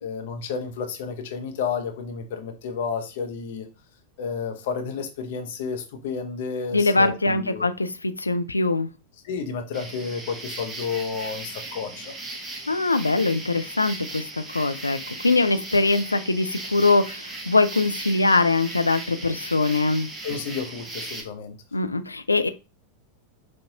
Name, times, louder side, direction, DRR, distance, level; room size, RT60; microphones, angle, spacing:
voice 1, 0.0-3.7 4.2-7.7 9.2-12.1 20.2-21.6, left 5 dB, 55° left, 0.9 m, -31 dB
voice 2, 6.7-8.9 12.7-14.2 14.5-15.0 15.2-20.1 21.7-22.5, left 3 dB, 80° left, 0.4 m, -22 dB
sound 1, 9.7-21.2, right 2 dB, 15° right, 0.9 m, -37 dB
5.3 x 2.6 x 2.8 m
figure-of-eight pair, 90°, 0 cm